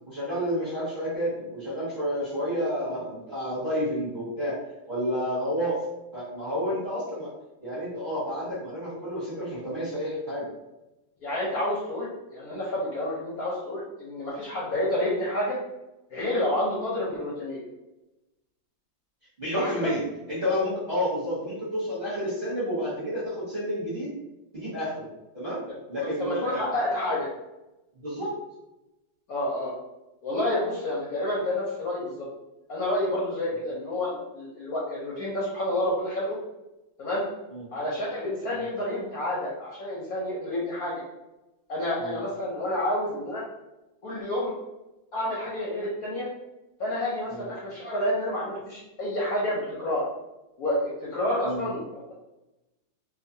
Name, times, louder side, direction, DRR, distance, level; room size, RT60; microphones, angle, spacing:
voice 1, 0.1-4.6 4.8-5.8 6.1-7.3 7.6-10.5 19.4-20.0 20.3-24.1 24.5-25.1 25.3-25.6 25.9-26.8 28.0-28.3 37.5-37.6 42.0-42.2 47.3-47.5 51.4-51.7, equal, 35° right, -10 dB, 0.9 m, -30 dB
voice 2, 11.2-15.6 16.1-17.7 19.5-19.9 26.0-27.3 29.3-29.7 30.2-32.3 32.7-36.4 37.0-37.2 37.7-41.0 41.7-43.4 44.0-44.6 45.1-46.3 46.8-50.0 50.6-52.1, left 1 dB, 65° left, -6 dB, 0.9 m, -29 dB
2.9 x 2.3 x 2.6 m, 0.97 s
omnidirectional pair, 2.1 m